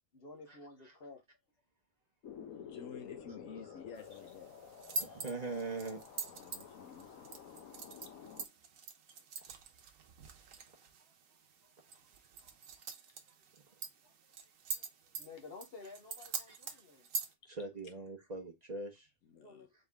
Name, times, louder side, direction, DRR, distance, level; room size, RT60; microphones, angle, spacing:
voice 1, 0.1-1.2 11.6-11.7 14.7-14.9 15.2-17.1 19.4-19.7, left 3 dB, 50° left, 1.0 m, -52 dB
sound 1, 2.2-8.5, left 8 dB, 90° left, 1.1 m, -51 dB
voice 2, 2.5-4.5 6.4-7.3 9.4-9.6 19.3-19.7, left 6 dB, 70° left, 1.2 m, -51 dB
sound 2, 4.0-17.3, right 5 dB, 75° right, 1.2 m, -45 dB
voice 3, 5.0-6.0 13.7-13.8 16.5-16.8 17.5-19.1, right 3 dB, 35° right, 0.9 m, -42 dB
4.1 x 3.6 x 3.4 m
omnidirectional pair, 1.4 m